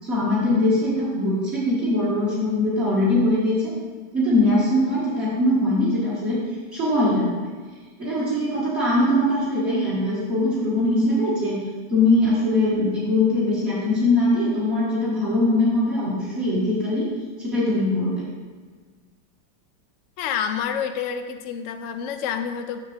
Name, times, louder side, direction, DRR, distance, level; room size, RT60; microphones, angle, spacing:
voice 1, 0.0-3.7 4.1-6.4 6.7-7.4 8.0-11.6 11.9-17.1 17.4-18.2, left 1 dB, 35° right, -10 dB, 1.9 m, -21 dB
voice 2, 20.2-22.8, left 7 dB, 75° left, 6 dB, 0.7 m, -28 dB
7.4 x 6.9 x 3.3 m, 1.5 s
omnidirectional pair, 1.9 m